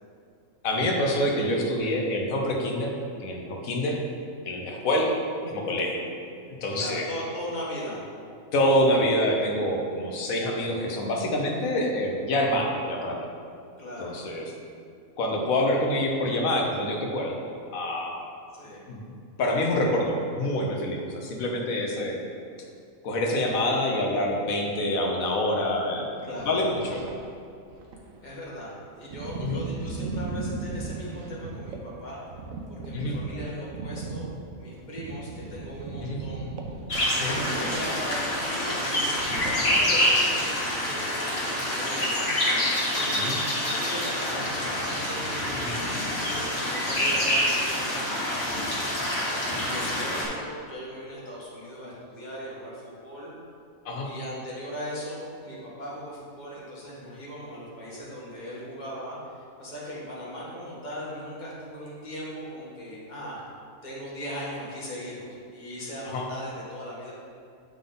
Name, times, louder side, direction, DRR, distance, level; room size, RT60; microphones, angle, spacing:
voice 1, 0.6-2.9 3.2-4.0 4.5-5.2 5.4-6.0 6.6-7.1 8.5-13.3 14.0-14.5 15.2-17.4 17.7-18.1 18.9-19.0 19.4-22.2 23.0-26.1 26.4-27.0 29.4-29.6 32.9-33.2 36.0-36.2 37.2-37.4 43.1-43.4 45.6-45.7 53.8-54.1 66.1-66.3, left 1 dB, 85° left, 0 dB, 1.3 m, -26 dB
voice 2, 6.7-8.0 13.8-14.2 18.5-18.8 21.9-22.1 26.2-26.6 28.2-32.2 32.7-34.3 34.5-36.5 37.2-42.4 42.9-49.0 49.6-53.3 54.0-63.4 63.8-67.1, equal, 35° left, -6 dB, 1.5 m, -38 dB
sound 1, 26.2-27.4 27.7-32.0 32.3-38.0 38.3-38.4 38.7-38.8 39.2-39.5, right 3 dB, 80° right, 1.1 m, -36 dB
sound 2, 36.9-50.2, left 1 dB, 50° left, 1.5 m, -26 dB
9.0 x 3.6 x 3.8 m, 2.4 s
omnidirectional pair, 1.4 m